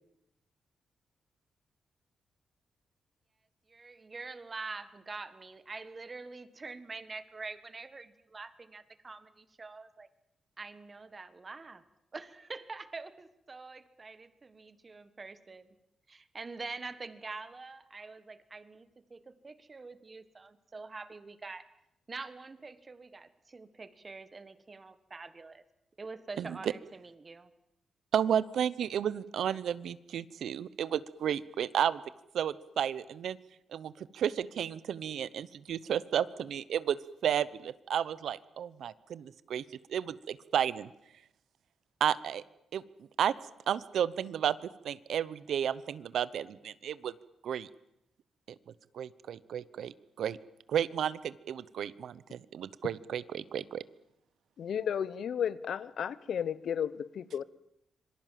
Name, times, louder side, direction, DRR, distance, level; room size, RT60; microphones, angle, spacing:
voice 1, 3.7-10.1 10.6-11.8 12.1-15.7 16.1-21.7 22.1-25.6 26.0-27.5, right 3 dB, 25° right, 12 dB, 1.5 m, -45 dB
voice 2, 26.4-26.7 28.1-32.0 32.3-33.4 33.7-39.6 39.9-40.9 42.0-42.4 42.7-42.8 43.2-43.3 43.7-44.6 44.8-47.1 47.4-47.7 48.9-50.4 50.7-53.8, right 9 dB, 75° right, 17 dB, 0.9 m, -32 dB
voice 3, 54.6-57.4, left 8 dB, 60° left, 17 dB, 0.9 m, -33 dB
26.5 x 23.5 x 7.6 m, 0.82 s
wide cardioid pair, 150°, 0 cm